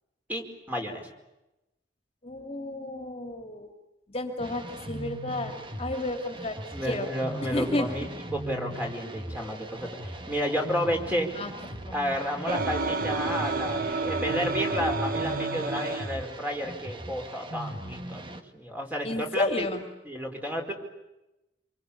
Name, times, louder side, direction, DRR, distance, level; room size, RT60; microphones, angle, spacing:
voice 1, 0.3-1.1 6.7-8.0 8.3-11.3 11.9-19.7 20.0-20.7, equal, 10° right, 2 dB, 4.8 m, -31 dB
voice 2, 2.2-3.7 4.1-5.5 5.8-6.6 6.8-7.1 7.5-7.9 11.3-11.8 19.0-19.8, left 2 dB, 35° left, 5 dB, 2.6 m, -31 dB
sound 1, 4.4-18.4, right 1 dB, 30° right, 1.7 m, -39 dB
sound 2, 12.5-16.2, right 3 dB, 50° right, 1.5 m, -30 dB
26.5 x 24.5 x 8.6 m, 0.96 s
head